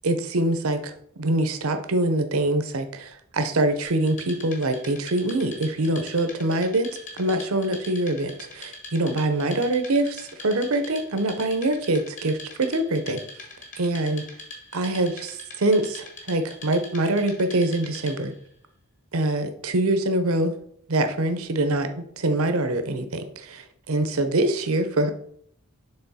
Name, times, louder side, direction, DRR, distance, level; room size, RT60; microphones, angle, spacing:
voice 1, 0.0-0.9 1.2-6.9 7.2-13.2 13.8-14.2 14.7-18.3 19.1-20.5 20.9-25.1, right 2 dB, 80° right, 8 dB, 0.8 m, -24 dB
Wood, 3.9-18.4, left 2 dB, 35° left, 1.4 m, -43 dB
6.9 x 3.6 x 4.1 m, 0.66 s
head